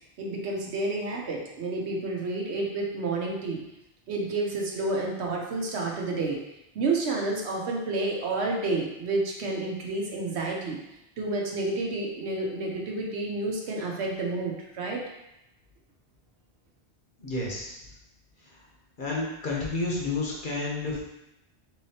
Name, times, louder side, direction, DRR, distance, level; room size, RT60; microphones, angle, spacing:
voice 1, 0.2-3.6 4.1-6.4 6.7-10.8 11.2-15.0, right 2 dB, 70° right, -1 dB, 0.9 m, -30 dB
voice 2, 17.2-17.8 19.0-21.0, left 3 dB, 50° left, -3 dB, 0.9 m, -30 dB
3.7 x 3.1 x 2.8 m, 0.87 s
omnidirectional pair, 1.2 m